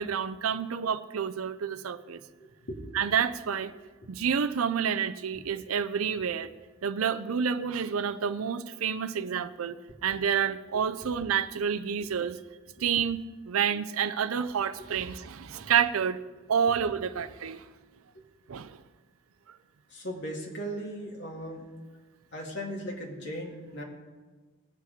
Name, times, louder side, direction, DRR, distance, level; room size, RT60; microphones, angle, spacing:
voice 1, 0.0-2.2 2.9-3.7 4.1-6.5 6.8-9.8 10.0-12.4 12.8-16.2 16.5-17.6 18.5-18.8, right 7 dB, 85° right, 12 dB, 0.5 m, -29 dB
voice 2, 2.4-3.0 4.0-4.1 15.6-15.7 18.1-18.2 19.9-21.7 22.3-23.8, equal, 55° left, -1 dB, 2.0 m, -38 dB
18.5 x 8.4 x 5.1 m, 1.3 s
head